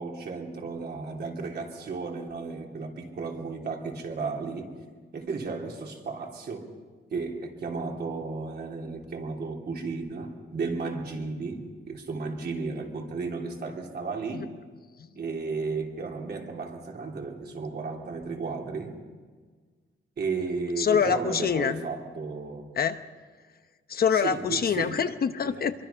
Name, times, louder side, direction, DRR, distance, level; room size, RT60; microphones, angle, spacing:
voice 1, 0.0-4.7 5.1-6.7 7.1-14.5 15.1-19.0 20.2-22.7 24.2-25.0 25.4-25.6, right 4 dB, 50° right, 0 dB, 3.4 m, -34 dB
voice 2, 20.8-21.8 22.8-23.0 23.9-25.8, left 7 dB, 45° left, 9 dB, 0.9 m, -25 dB
25.5 x 23.5 x 5.8 m, 1.5 s
wide cardioid pair, 155°, 21 cm